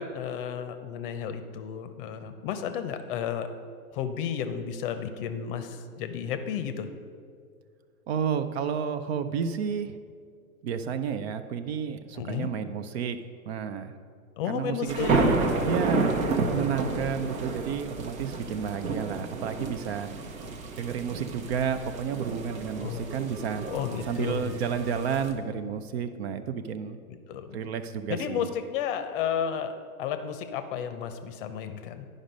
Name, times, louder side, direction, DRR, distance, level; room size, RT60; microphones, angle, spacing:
voice 1, 0.0-3.5 3.9-6.9 12.1-12.5 14.4-15.5 22.8-23.0 23.7-24.6 27.1-27.6 28.1-29.7 30.0-32.1, left 8 dB, 40° left, 9 dB, 0.6 m, -32 dB
voice 2, 8.1-10.0 10.6-13.2 13.5-13.9 14.5-16.2 16.5-20.1 20.8-23.7 24.1-27.0 27.5-28.5, right 7 dB, 45° right, 10 dB, 0.5 m, -31 dB
sound 1, 14.9-25.3, right 3 dB, 70° right, 1.2 m, -31 dB
9.9 x 5.2 x 5.2 m, 2.2 s
hypercardioid pair, 120°, 44 cm